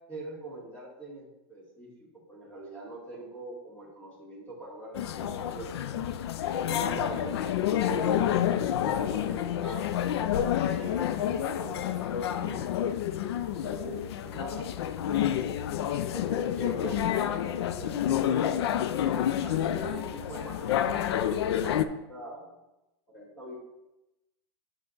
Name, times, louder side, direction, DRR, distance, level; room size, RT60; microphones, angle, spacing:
voice 1, 0.1-5.7 6.6-7.4 7.8-12.6 13.5-14.7 15.0-15.5 16.1-18.8 19.4-22.5 23.1-23.6, right 2 dB, 10° left, -6 dB, 2.1 m, -43 dB
sound 1, 4.9-21.9, left 10 dB, 65° left, 0.4 m, -29 dB
6.6 x 5.7 x 3.9 m, 0.95 s
supercardioid pair, 175°, 15 cm